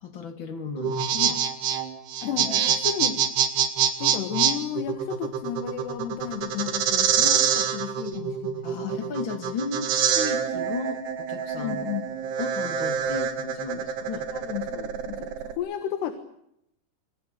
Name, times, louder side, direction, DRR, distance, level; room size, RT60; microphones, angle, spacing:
voice 1, 0.0-1.4 8.6-11.9 12.4-14.3, left 4 dB, 40° left, 9 dB, 2.0 m, -34 dB
sound 1, 0.8-15.5, right 8 dB, 80° right, 4.2 m, -26 dB
voice 2, 2.2-3.2 4.0-9.2 11.6-12.1 14.3-16.1, left 10 dB, 85° left, 9 dB, 3.6 m, -33 dB
27.0 x 25.0 x 6.8 m, 0.78 s
omnidirectional pair, 4.6 m